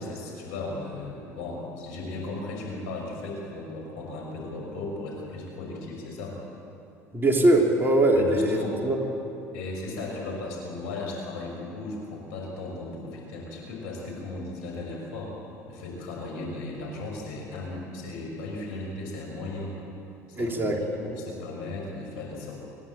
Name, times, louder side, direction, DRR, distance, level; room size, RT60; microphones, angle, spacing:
voice 1, 0.0-6.4 8.1-8.8 9.5-15.3 15.7-19.7 20.3-22.6, left 2 dB, 75° left, -1 dB, 6.2 m, -36 dB
voice 2, 7.1-9.0 20.4-20.8, right 1 dB, 25° right, 1 dB, 3.3 m, -21 dB
27.5 x 11.5 x 8.7 m, 2.7 s
hypercardioid pair, 75°, 8 cm